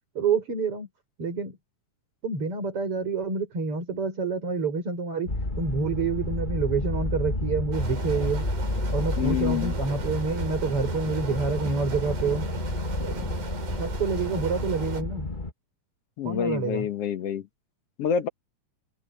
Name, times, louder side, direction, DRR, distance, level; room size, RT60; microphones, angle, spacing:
voice 1, 0.1-0.9 1.2-1.6 2.2-8.5 8.9-12.5 13.0-13.3 13.7-15.3 16.2-16.9, right 4 dB, 45° right, 6.7 m, -28 dB
sound 1, 5.3-15.5, left 2 dB, 20° left, 1.4 m, -30 dB
sound 2, 7.7-15.0, right 5 dB, 85° right, 5.6 m, -37 dB
voice 2, 9.2-9.7 16.2-17.5 18.0-18.3, left 8 dB, 55° left, 2.2 m, -27 dB
omnidirectional pair, 3.5 m